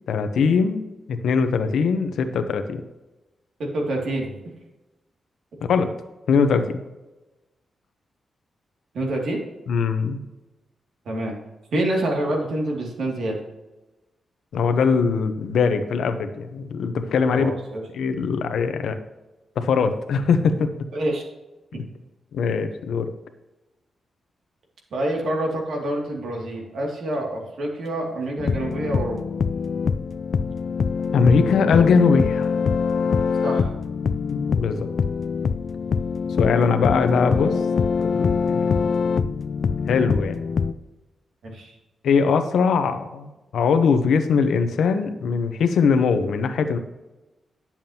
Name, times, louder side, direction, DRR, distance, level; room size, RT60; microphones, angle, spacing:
voice 1, 0.1-0.8 1.1-2.8 5.7-5.9 6.3-6.8 9.7-10.2 14.5-17.5 17.9-18.9 19.6-20.7 22.3-23.1 31.1-32.5 34.3-34.9 36.4-37.6 38.0-38.9 39.9-40.4 42.0-46.8, left 5 dB, 90° left, 8 dB, 0.8 m, -21 dB
voice 2, 3.6-4.4 8.9-9.4 11.0-11.3 11.7-13.4 17.3-17.8 20.9-21.2 21.7-21.8 24.9-29.2 33.4-33.7 41.4-41.8, right 1 dB, 75° right, 0 dB, 2.4 m, -27 dB
sound 1, 28.4-40.7, left 5 dB, 60° left, 0.4 m, -24 dB
11.0 x 7.3 x 2.9 m, 1.1 s
wide cardioid pair, 110°, 0 cm